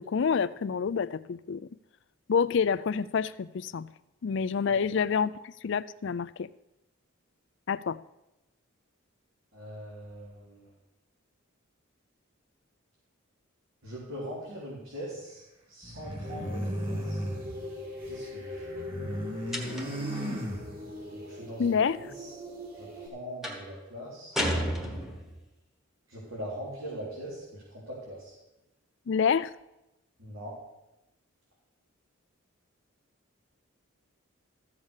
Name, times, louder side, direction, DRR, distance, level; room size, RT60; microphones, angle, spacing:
voice 1, 0.0-1.7 2.3-3.9 4.2-6.5 7.7-8.0 21.6-22.0 29.1-29.5, left 6 dB, 55° left, 16 dB, 0.4 m, -27 dB
voice 2, 9.5-10.7 13.8-15.4 15.7-17.2 18.0-18.7 21.1-21.7 22.0-22.3 22.7-24.4 26.1-28.3 30.2-30.5, equal, 75° right, -7 dB, 4.0 m, -41 dB
sound 1, 15.8-18.3 18.5-21.1, equal, 25° right, 2.5 m, -35 dB
sound 2, 16.2-23.1, left 1 dB, 45° right, 3.1 m, -42 dB
sound 3, 19.5-20.1 23.4-23.7 24.3-25.4, equal, ahead, 1.3 m, -32 dB
14.0 x 7.3 x 6.5 m, 0.93 s
head